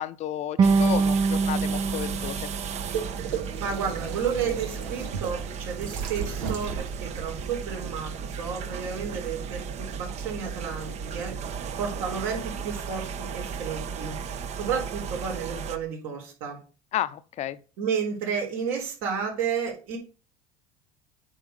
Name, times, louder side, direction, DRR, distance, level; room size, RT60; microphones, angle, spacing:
voice 1, 0.0-2.5 16.9-17.6, left 12 dB, 50° left, 0.7 m, -32 dB
sound 1, 0.6-3.7, right 4 dB, 30° right, 0.4 m, -25 dB
sound 2, 0.6-15.8, right 6 dB, 50° right, 1.0 m, -35 dB
sound 3, 1.5-7.7, right 7 dB, 90° right, 1.9 m, -36 dB
voice 2, 3.3-14.2 14.5-16.6 17.8-20.0, right 6 dB, 70° right, 4.2 m, -32 dB
9.0 x 4.4 x 5.5 m
supercardioid pair, 100°, 15 cm